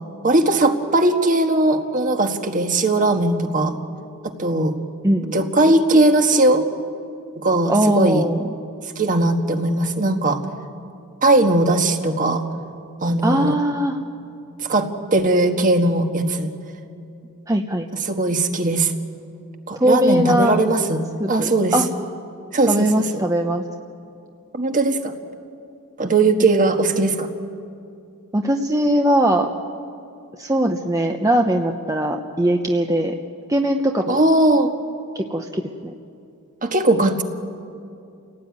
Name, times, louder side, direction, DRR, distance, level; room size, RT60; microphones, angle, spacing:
voice 1, 0.2-3.7 4.2-4.7 5.3-6.7 7.4-8.2 9.0-10.4 11.2-12.4 13.0-13.5 14.6-16.5 18.0-18.9 19.7-21.7 22.5-22.9 24.5-25.1 26.0-27.3 34.1-34.7 36.6-37.2, right 2 dB, 35° right, 5 dB, 1.5 m, -19 dB
voice 2, 5.0-5.4 7.7-8.4 13.2-14.0 17.5-17.9 19.8-20.6 21.2-21.9 22.7-23.6 28.3-29.5 30.4-33.1 33.5-34.2 35.1-35.9, right 1 dB, 15° right, 3 dB, 0.8 m, -20 dB
29.5 x 17.5 x 9.5 m, 2.5 s
head